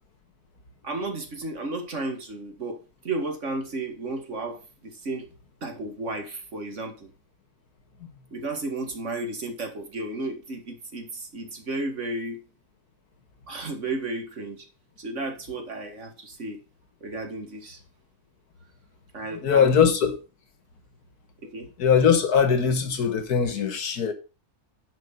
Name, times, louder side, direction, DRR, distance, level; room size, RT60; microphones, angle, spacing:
voice 1, 0.8-2.8 3.0-5.3 5.6-7.1 8.3-12.4 13.5-14.6 15.0-16.6 17.0-17.8 19.1-19.7 21.4-21.7, right 2 dB, 50° right, 2.1 m, -33 dB
voice 2, 19.4-20.1 21.8-24.1, left 7 dB, 85° left, 1.9 m, -21 dB
11.5 x 5.1 x 5.4 m
omnidirectional pair, 1.6 m